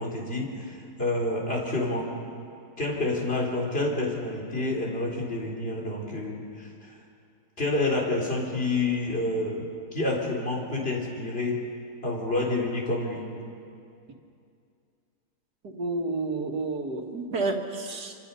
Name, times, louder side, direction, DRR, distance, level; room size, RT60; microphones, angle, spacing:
voice 1, 0.0-2.1 2.8-7.0 7.6-11.6 12.0-13.3, left 2 dB, 35° left, -2 dB, 4.0 m, -28 dB
voice 2, 15.6-18.2, right 3 dB, 85° right, 2 dB, 2.4 m, -30 dB
26.0 x 25.5 x 5.6 m, 2.5 s
omnidirectional pair, 1.7 m